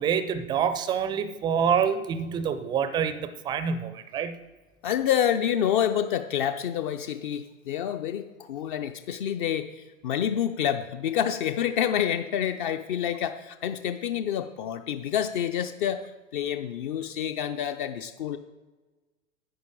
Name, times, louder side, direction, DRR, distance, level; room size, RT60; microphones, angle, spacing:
voice 1, 0.0-4.4, right 7 dB, 10° right, 12 dB, 0.4 m, -27 dB
voice 2, 4.8-16.0 16.3-18.4, left 9 dB, 40° left, 8 dB, 0.6 m, -28 dB
11.0 x 8.6 x 3.8 m, 1.2 s
figure-of-eight pair, 95°, 39 cm